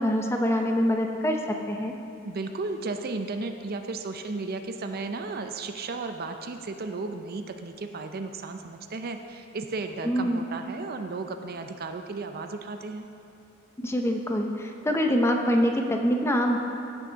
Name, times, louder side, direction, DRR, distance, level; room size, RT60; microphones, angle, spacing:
voice 1, 0.0-1.4 1.7-1.9 10.0-10.5 13.8-16.6, equal, 15° left, 3 dB, 0.6 m, -25 dB
voice 2, 2.2-13.1, right 3 dB, 50° right, 6 dB, 0.5 m, -34 dB
15.5 x 5.9 x 3.9 m, 2.8 s
head